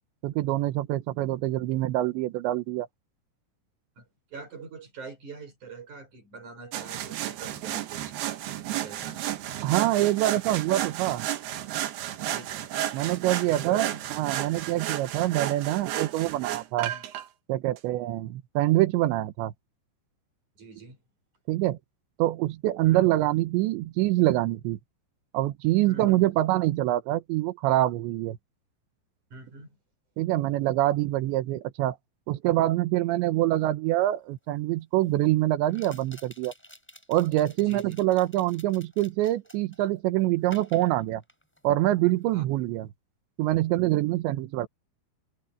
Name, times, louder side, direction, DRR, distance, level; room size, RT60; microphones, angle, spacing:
voice 1, 0.2-2.9 9.6-11.3 12.9-16.9 17.5-19.5 21.5-21.8 22.2-24.8 25.3-28.4 30.2-32.0 32.3-36.5 37.1-41.2 41.6-42.9 43.4-44.7, right 15 dB, 85° right, 3.3 m, -25 dB
voice 2, 4.0-8.2 8.7-9.2 12.2-12.6 13.5-14.0 16.9-17.1 20.6-21.0 22.8-23.1 25.9-26.2 29.3-29.8 37.6-38.0 42.3-42.4, right 4 dB, 40° right, 7.9 m, -44 dB
sound 1, 6.7-17.3 17.8-17.9, right 12 dB, 70° right, 3.2 m, -33 dB
sound 2, 34.0-34.1 35.7-39.9 40.4-41.8 42.1-42.4, equal, ahead, 6.4 m, -51 dB
omnidirectional pair, 5.2 m